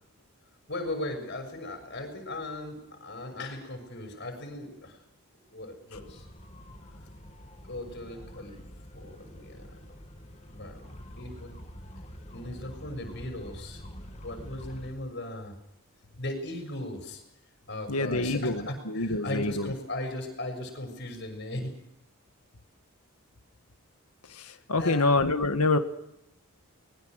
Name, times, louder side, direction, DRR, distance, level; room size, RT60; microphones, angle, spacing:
voice 1, 0.7-5.0 5.5-6.2 7.7-8.6 8.9-9.7 10.4-11.6 12.3-15.5 16.2-17.2 17.7-21.7 24.8-25.1, left 1 dB, 50° left, 5 dB, 6.7 m, -37 dB
sound 1, 5.9-14.9, equal, 30° left, 2.4 m, -46 dB
voice 2, 17.9-19.7 24.3-25.8, left 2 dB, 90° left, 8 dB, 1.7 m, -26 dB
24.0 x 21.5 x 6.6 m, 0.83 s
head